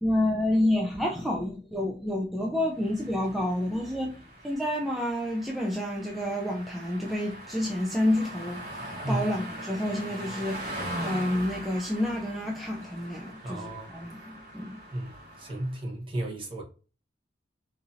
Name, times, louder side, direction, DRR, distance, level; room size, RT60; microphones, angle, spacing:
voice 1, 0.0-4.2 4.4-14.8, left 1 dB, ahead, 0.5 m, -29 dB
sound 1, 2.8-15.8, right 1 dB, 45° right, 2.0 m, -41 dB
voice 2, 13.4-13.9 14.9-15.1 15.4-16.6, right 1 dB, 30° right, 1.1 m, -33 dB
4.5 x 2.7 x 2.6 m
head